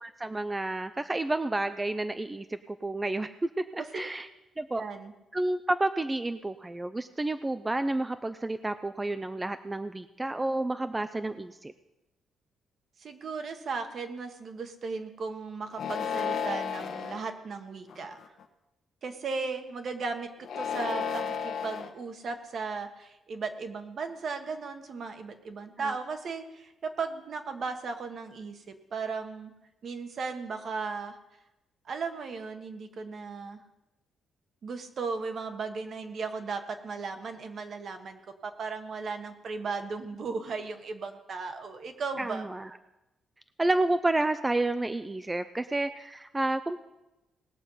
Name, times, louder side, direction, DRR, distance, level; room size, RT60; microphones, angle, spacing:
voice 1, 0.0-4.3 4.6-4.8 5.3-11.7 25.8-26.0 42.2-42.7 43.6-46.8, right 2 dB, 15° right, 10 dB, 0.4 m, -30 dB
voice 2, 4.8-5.1 13.0-18.2 19.0-20.3 20.6-29.5 29.8-31.2 31.8-33.6 34.6-42.4, right 4 dB, 55° right, 7 dB, 1.4 m, -36 dB
sound 1, 15.7-17.2 17.9-18.4 20.4-21.9, left 6 dB, 70° left, 1.1 m, -33 dB
19.0 x 6.8 x 5.6 m, 0.98 s
cardioid pair, 110°, 0 cm